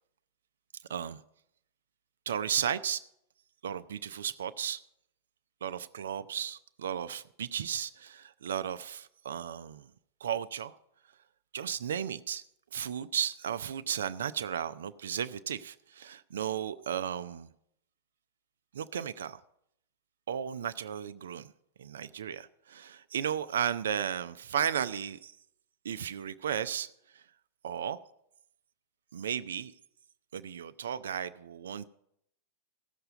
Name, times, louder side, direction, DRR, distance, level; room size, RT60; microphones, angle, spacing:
voice 1, 0.9-1.2 2.3-3.0 3.6-4.8 5.6-9.9 10.2-10.8 11.5-12.4 12.7-17.5 18.7-19.4 20.3-21.5 21.8-25.4 25.8-27.2 27.6-28.0 29.1-29.7 30.3-31.9, right 9 dB, 65° right, 12 dB, 0.4 m, -34 dB
15.0 x 6.7 x 6.6 m, 0.76 s
figure-of-eight pair, 90°, 0 cm